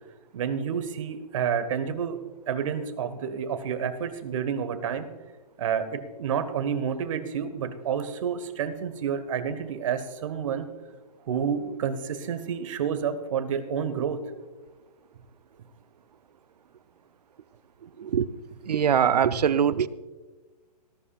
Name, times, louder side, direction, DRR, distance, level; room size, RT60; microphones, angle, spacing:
voice 1, 0.3-2.2 2.5-5.1 5.6-10.7 11.3-14.2 19.2-19.3, right 7 dB, 50° right, 10 dB, 1.3 m, -29 dB
voice 2, 18.6-19.9, right 8 dB, 75° right, 14 dB, 0.7 m, -22 dB
19.5 x 11.5 x 2.4 m, 1.3 s
hypercardioid pair, 150°, 21 cm